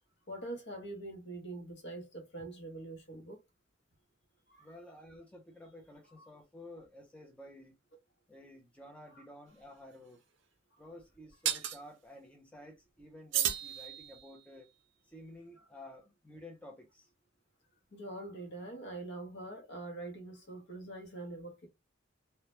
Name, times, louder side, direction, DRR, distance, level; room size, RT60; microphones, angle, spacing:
voice 1, 0.3-3.4 4.5-4.7 9.2-9.3 10.7-10.8 17.9-21.7, right 2 dB, 55° left, 0.8 m, -44 dB
voice 2, 4.6-7.7 8.3-10.2 10.8-14.7 15.1-17.1, left 1 dB, 5° left, 0.5 m, -52 dB
sound 1, 9.5-9.6 11.5-11.8 13.3-14.4, right 9 dB, 60° right, 0.5 m, -33 dB
2.2 x 2.1 x 2.9 m
head